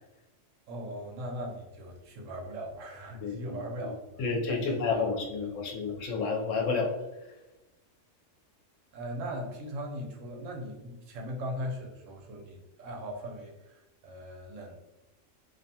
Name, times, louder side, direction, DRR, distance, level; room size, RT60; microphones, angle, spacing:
voice 1, 0.7-5.1 5.4-5.9 8.9-14.8, equal, 85° right, 1 dB, 1.0 m, -39 dB
voice 2, 4.2-6.9, left 4 dB, 85° left, 1 dB, 1.0 m, -30 dB
2.5 x 2.2 x 2.7 m, 1.0 s
omnidirectional pair, 1.3 m